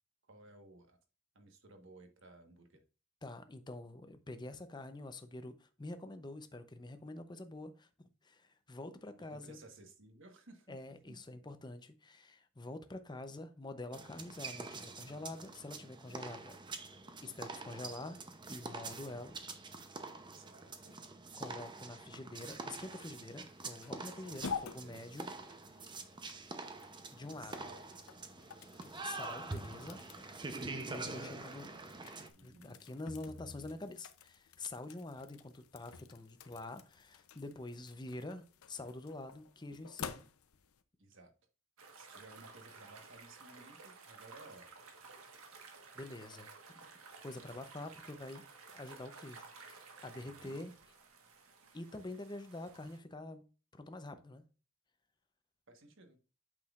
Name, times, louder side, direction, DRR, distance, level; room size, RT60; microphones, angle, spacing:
voice 1, 0.3-1.0 1.3-2.8 9.3-10.7 11.1-11.2 20.2-20.9 24.1-24.4 24.7-25.1 27.4-27.8 31.1-31.4 32.3-32.8 41.0-41.3 42.0-44.7 50.2-50.6 55.7-56.2, right 2 dB, 60° right, 1.3 m, -57 dB
voice 2, 3.2-9.6 10.7-16.6 16.8-16.9 17.2-18.2 18.5-19.4 21.3-25.3 27.1-27.5 29.0-30.0 30.8-31.7 32.0-40.3 45.9-46.9 47.2-50.7 51.7-53.4 53.7-54.4, left 2 dB, 20° left, 0.7 m, -47 dB
sound 1, 13.9-32.3, right 3 dB, 20° right, 0.7 m, -46 dB
sound 2, 22.8-40.8, left 5 dB, 85° left, 0.7 m, -50 dB
sound 3, 41.8-53.0, right 4 dB, 80° right, 1.4 m, -55 dB
8.6 x 6.1 x 2.5 m
head